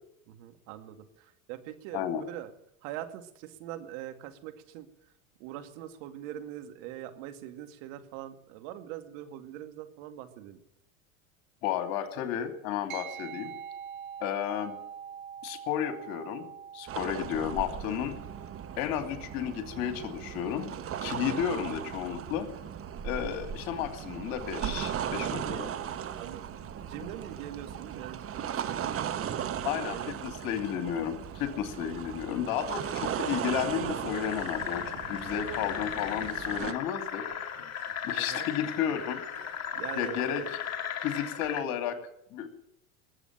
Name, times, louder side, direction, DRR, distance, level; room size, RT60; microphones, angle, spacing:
voice 1, 0.3-2.5 2.8-4.9 5.4-10.6 25.5-25.7 26.2-28.9 29.8-30.1 38.2-38.5 39.7-40.5, right 12 dB, 60° right, 8 dB, 2.2 m, -42 dB
voice 2, 11.6-13.5 14.2-14.8 15.4-16.5 16.7-18.2 18.8-20.7 21.0-22.5 23.0-25.7 29.6-37.3 38.0-39.2 40.0-40.4 41.0-42.0 42.3-42.5, left 9 dB, 55° left, 8 dB, 2.7 m, -32 dB
sound 1, 12.9-22.6, right 8 dB, 80° right, 5.8 m, -46 dB
sound 2, 16.9-36.7, right 9 dB, 30° right, 1.3 m, -37 dB
sound 3, 34.1-41.6, left 8 dB, 35° left, 2.1 m, -36 dB
19.5 x 8.1 x 8.9 m, 0.77 s
hypercardioid pair, 90°, 41 cm